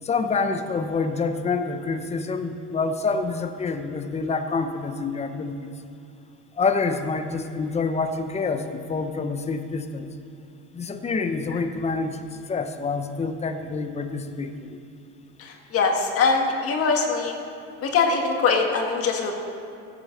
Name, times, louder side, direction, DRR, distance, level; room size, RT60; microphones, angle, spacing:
voice 1, 0.0-5.5 6.6-10.1 10.7-12.2 12.5-14.8, left 4 dB, 20° left, 8 dB, 0.9 m, -27 dB
voice 2, 15.4-17.4 17.8-19.3, left 4 dB, 45° left, 2 dB, 1.8 m, -22 dB
14.5 x 9.3 x 5.8 m, 2.7 s
cardioid pair, 125°, 32 cm